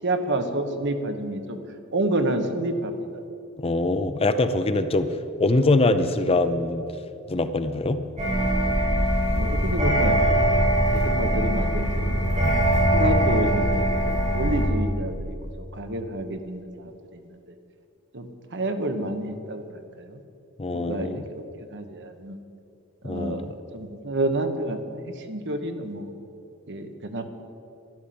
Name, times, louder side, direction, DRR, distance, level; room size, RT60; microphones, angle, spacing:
voice 1, 0.0-1.6 1.9-3.2 9.3-10.2 10.9-12.2 12.9-13.9 14.3-15.3 15.7-17.4 18.1-20.2 20.7-22.4 23.0-26.1 26.7-27.2, right 1 dB, 55° right, 7 dB, 1.2 m, -29 dB
voice 2, 3.6-5.1 5.4-6.8 7.3-8.0 20.6-21.2 23.0-23.5, left 2 dB, 25° left, 10 dB, 0.6 m, -23 dB
sound 1, 8.2-14.6, right 1 dB, 35° right, 4.4 m, -22 dB
12.0 x 11.5 x 7.7 m, 2.6 s
head